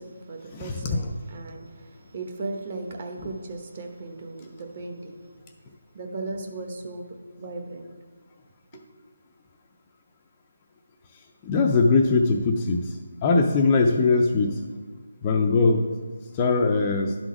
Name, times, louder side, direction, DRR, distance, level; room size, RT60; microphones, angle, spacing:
voice 1, 0.0-5.2 5.9-7.1 7.4-7.9 8.7-8.8, right 3 dB, 35° right, 3 dB, 1.0 m, -37 dB
voice 2, 0.5-1.1 11.4-14.6 15.2-15.9 16.3-17.2, left 3 dB, 20° left, 2 dB, 0.4 m, -21 dB
11.5 x 4.0 x 4.8 m, 1.6 s
figure-of-eight pair, 170°, 0 cm